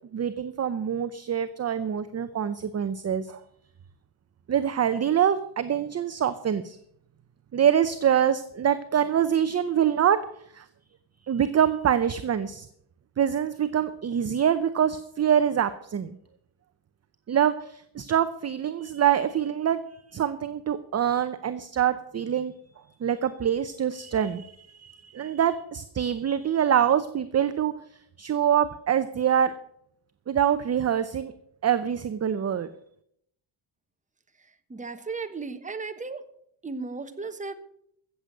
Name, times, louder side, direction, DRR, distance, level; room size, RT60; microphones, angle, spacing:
voice 1, 0.1-3.4 4.5-6.8 7.5-10.2 10.5-10.6 11.3-12.7 13.2-16.2 17.3-19.8 20.1-22.5 23.0-27.7 28.2-29.5 30.3-31.3 31.6-32.7, right 9 dB, 30° right, 12 dB, 0.7 m, -25 dB
voice 2, 34.7-36.2 36.6-37.5, right 4 dB, 15° right, 8 dB, 1.1 m, -35 dB
15.0 x 7.8 x 6.5 m, 0.71 s
cardioid pair, 120°, 49 cm